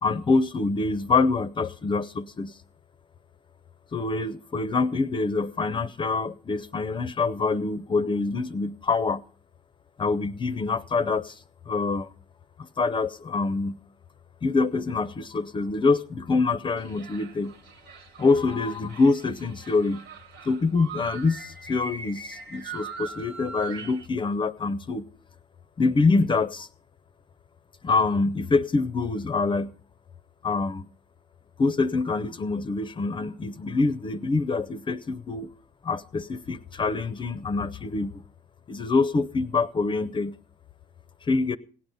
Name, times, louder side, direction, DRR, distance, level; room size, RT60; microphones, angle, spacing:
voice 1, 0.0-2.6 3.9-9.2 10.0-11.4 11.7-12.1 12.6-13.8 14.4-17.5 18.2-20.0 20.5-25.1 25.8-26.7 27.8-29.7 30.4-30.9 31.6-35.5 35.8-38.2 38.7-40.4 41.2-41.6, left 3 dB, 30° left, 12 dB, 0.6 m, -25 dB
sound 1, 16.8-24.1, right 5 dB, 85° right, 1.7 m, -41 dB
17.0 x 9.2 x 5.4 m, 0.41 s
cardioid pair, 110°, 17 cm